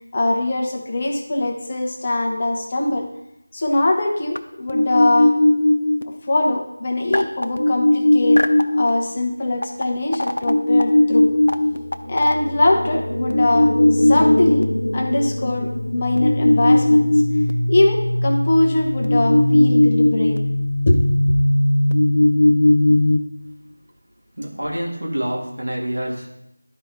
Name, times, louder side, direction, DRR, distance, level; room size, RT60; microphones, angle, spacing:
voice 1, 0.1-3.1 3.5-5.4 6.1-8.5 8.7-11.3 12.1-17.1 17.7-20.4 20.9-21.0 21.3-21.4, left 2 dB, 25° left, 1 dB, 1.0 m, -22 dB
sound 1, 4.4-4.5 4.7-6.0 7.1-8.9 9.6-9.8 10.1-23.2, left 1 dB, 80° left, 0.7 m, -17 dB
voice 2, 24.3-26.3, right 1 dB, 75° right, -2 dB, 2.4 m, -27 dB
11.5 x 4.4 x 3.6 m, 0.86 s
figure-of-eight pair, 170°, 0 cm